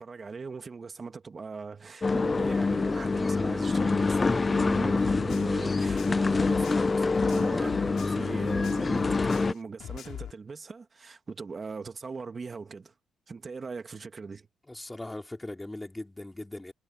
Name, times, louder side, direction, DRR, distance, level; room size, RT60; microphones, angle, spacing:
voice 1, 0.0-12.9 13.3-14.5, right 4 dB, 35° right, 2.2 m, -40 dB
sound 1, 2.0-9.5, left 4 dB, 25° left, 0.4 m, -26 dB
sound 2, 5.0-8.2 8.5-10.3, left 10 dB, 70° left, 3.5 m, -41 dB
voice 2, 14.7-16.7, left 1 dB, 10° left, 4.4 m, -39 dB
cardioid pair, 90°, 0 cm